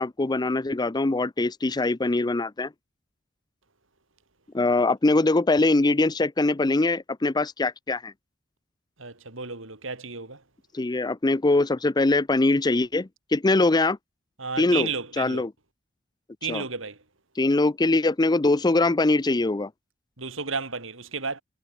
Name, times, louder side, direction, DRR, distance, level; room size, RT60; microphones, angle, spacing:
voice 1, 0.0-2.7 4.5-8.1 10.7-14.0 14.6-14.9 15.2-15.5 16.5-16.6 17.4-19.7, left 2 dB, 20° left, 0.5 m, -22 dB
voice 2, 9.0-10.4 14.4-15.5 16.4-17.0 20.2-21.4, right 5 dB, 75° right, 3.8 m, -32 dB
head